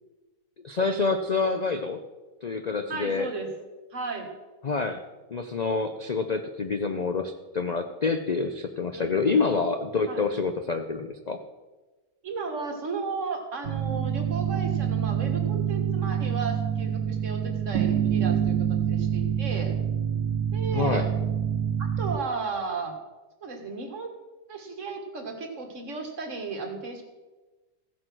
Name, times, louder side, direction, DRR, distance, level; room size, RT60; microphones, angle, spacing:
voice 1, 0.6-2.0 2.4-3.3 4.6-5.0 5.3-11.4 20.7-21.1, left 4 dB, 60° left, 7 dB, 0.4 m, -27 dB
voice 2, 2.9-3.5 3.9-4.3 8.9-9.4 10.1-10.3 12.2-19.7 20.5-21.1 21.8-23.0 23.4-24.1 24.5-27.0, right 4 dB, 50° right, 4 dB, 2.0 m, -34 dB
sound 1, 13.6-22.2, right 9 dB, 80° right, 1.2 m, -26 dB
15.0 x 7.7 x 6.1 m, 1.2 s
omnidirectional pair, 1.7 m